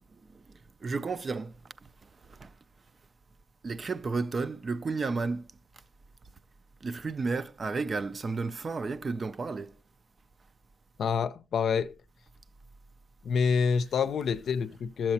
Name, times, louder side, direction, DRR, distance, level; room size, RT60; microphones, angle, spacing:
voice 1, 0.1-0.4 0.8-1.5 1.8-1.9 2.2-2.5 3.6-5.5 6.8-9.8, right 4 dB, 45° right, 0.5 m, -32 dB
voice 2, 11.0-11.9 13.2-15.1, left 6 dB, 75° left, 0.5 m, -27 dB
12.5 x 7.3 x 2.8 m
cardioid pair, 75°, 0 cm